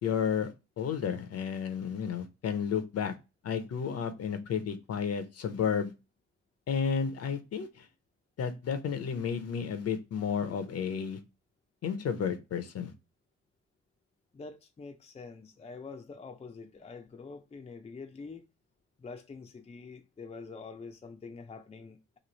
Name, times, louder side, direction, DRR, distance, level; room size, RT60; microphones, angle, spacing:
voice 1, 0.0-3.1 3.4-5.9 6.7-7.8 8.4-11.2 11.8-12.9, left 7 dB, 55° left, 0.7 m, -32 dB
voice 2, 14.3-18.4 19.0-22.2, left 4 dB, 20° left, 0.6 m, -46 dB
3.1 x 2.5 x 3.8 m
cardioid pair, 90°, 30 cm